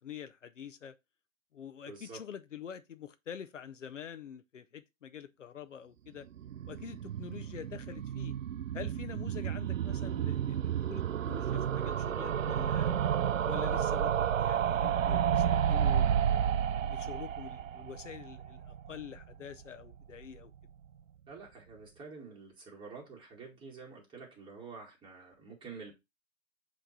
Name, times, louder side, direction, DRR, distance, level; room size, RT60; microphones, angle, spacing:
voice 1, 0.0-1.0 1.5-6.3 6.7-8.4 8.7-12.9 13.5-16.3 16.9-20.5, left 8 dB, 70° left, 0.8 m, -46 dB
voice 2, 1.9-2.2 21.3-25.9, right 4 dB, 10° right, 2.1 m, -48 dB
sound 1, 6.3-19.3 19.6-19.7 19.9-20.0 20.2-20.3, right 9 dB, 80° right, 0.5 m, -31 dB
7.7 x 3.3 x 4.2 m
figure-of-eight pair, 125°, 39 cm